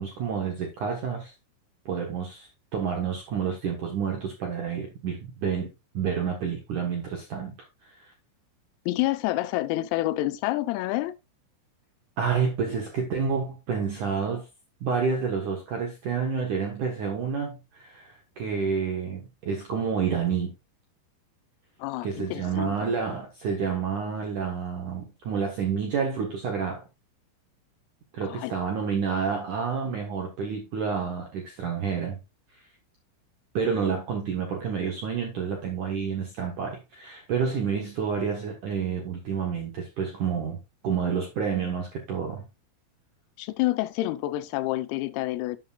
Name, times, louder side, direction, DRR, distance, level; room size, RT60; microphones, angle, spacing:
voice 1, 0.0-1.3 1.9-7.5 7.8-8.1 12.2-14.5 14.8-20.5 22.0-26.9 28.1-32.2 33.5-40.6 40.8-42.5, right 6 dB, 70° right, 1.9 m, -29 dB
voice 2, 8.9-11.1 21.8-22.8 28.2-28.5 43.4-45.6, left 17 dB, 90° left, 3.5 m, -28 dB
11.5 x 8.1 x 2.5 m
omnidirectional pair, 6.0 m